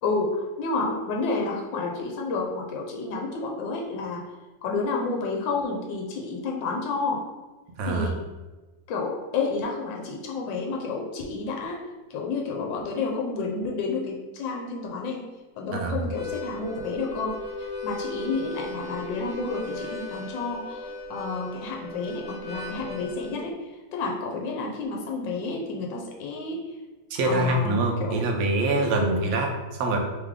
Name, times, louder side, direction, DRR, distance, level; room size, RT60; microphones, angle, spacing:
voice 1, 0.0-4.2 4.6-7.2 7.9-8.2 8.9-11.8 12.1-15.2 15.6-23.5 23.9-26.6 27.2-28.2 28.9-29.2, left 3 dB, 80° left, -1 dB, 1.4 m, -30 dB
voice 2, 7.8-8.1 15.7-16.0 27.1-30.0, right 2 dB, 70° right, 2 dB, 0.8 m, -25 dB
Harmonica, 16.0-23.4, left 2 dB, 60° left, 0.7 m, -37 dB
3.3 x 3.3 x 3.6 m, 1.2 s
omnidirectional pair, 2.0 m